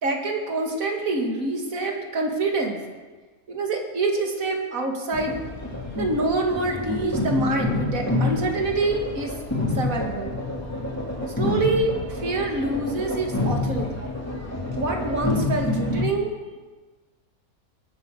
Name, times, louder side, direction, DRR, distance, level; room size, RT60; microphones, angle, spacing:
voice 1, 0.0-2.8 3.5-5.4 5.9-9.4 9.7-10.3 11.4-14.1 14.8-16.6, right 2 dB, 60° right, 2 dB, 2.5 m, -26 dB
sound 1, 5.1-16.0, left 2 dB, 10° left, 2.7 m, -28 dB
22.0 x 8.1 x 6.6 m, 1.3 s
omnidirectional pair, 1.6 m